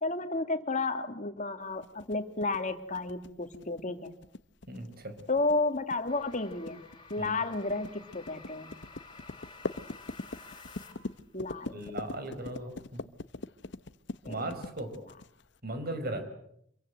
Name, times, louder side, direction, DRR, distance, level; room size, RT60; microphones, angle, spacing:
voice 1, 0.0-4.1 5.3-6.8 7.1-8.7 11.3-11.8 14.2-14.5, left 3 dB, 40° left, 8 dB, 2.5 m, -32 dB
sound 1, 1.8-15.6, left 2 dB, 60° left, 0.9 m, -42 dB
voice 2, 4.7-5.1 7.2-7.3 11.7-13.0 14.3-14.9 15.6-16.3, right 1 dB, 50° right, 9 dB, 4.9 m, -37 dB
sound 2, 6.1-11.2, left 4 dB, 25° left, 4.4 m, -52 dB
26.5 x 23.0 x 7.8 m, 0.72 s
head